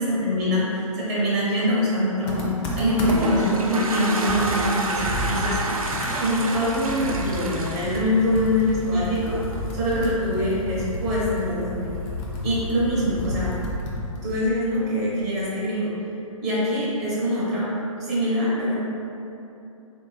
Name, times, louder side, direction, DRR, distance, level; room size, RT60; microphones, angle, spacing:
voice 1, 0.0-5.6 6.2-9.4 9.7-11.9 12.4-13.6 14.2-16.0 16.4-18.8, equal, 25° right, -8 dB, 0.7 m, -24 dB
Computer keyboard, 2.3-3.4 3.9-4.0 4.3-7.6 7.8-14.3, left 2 dB, 20° left, 0.4 m, -31 dB
Toilet flush, 2.7-9.0, right 2 dB, 80° right, 0.5 m, -28 dB
3.6 x 2.6 x 3.0 m, 2.8 s
figure-of-eight pair, 125°, 18 cm